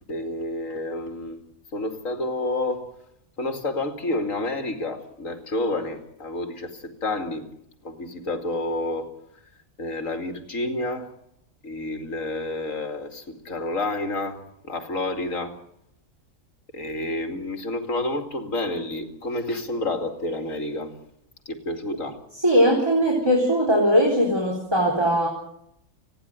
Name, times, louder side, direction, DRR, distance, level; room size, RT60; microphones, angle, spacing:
voice 1, 0.1-1.4 1.7-2.8 3.4-6.7 7.0-7.4 7.8-9.1 9.8-11.0 11.6-14.4 14.7-15.5 16.7-20.9 21.5-22.2, left 2 dB, 65° left, 6 dB, 2.9 m, -29 dB
voice 2, 22.3-25.3, equal, 20° right, -1 dB, 4.5 m, -20 dB
30.0 x 10.5 x 9.5 m, 0.76 s
omnidirectional pair, 1.5 m